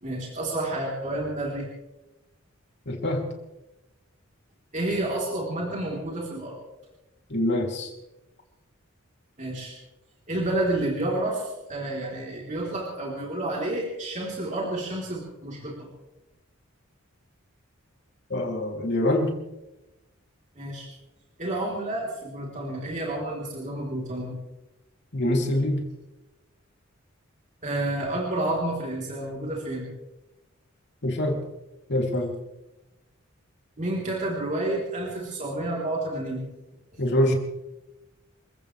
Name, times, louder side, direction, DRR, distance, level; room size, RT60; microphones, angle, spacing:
voice 1, 0.0-1.6 4.7-6.6 9.4-9.8 10.3-15.9 20.6-20.9 21.4-24.3 27.6-29.9 33.8-36.5, right 1 dB, 35° right, -3 dB, 3.9 m, -30 dB
voice 2, 2.8-3.2 7.3-7.9 18.3-19.3 25.1-25.9 31.0-31.4 31.9-32.3 37.0-37.4, left 1 dB, 55° left, 1 dB, 3.1 m, -25 dB
28.5 x 15.0 x 3.4 m, 0.99 s
head